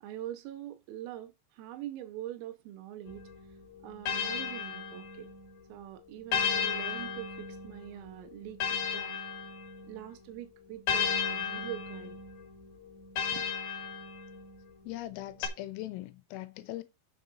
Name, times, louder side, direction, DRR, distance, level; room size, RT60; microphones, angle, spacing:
voice 1, 0.0-3.3 3.8-5.3 5.7-9.2 9.9-12.2 13.3-13.5, right 12 dB, 90° right, 3.5 m, -43 dB
sound 1, 3.1-5.5 6.3-10.1 10.9-14.6 15.4-15.5, left 7 dB, 55° left, 3.3 m, -35 dB
voice 2, 14.9-16.8, left 15 dB, 80° left, 3.5 m, -40 dB
7.7 x 7.4 x 4.2 m
omnidirectional pair, 5.9 m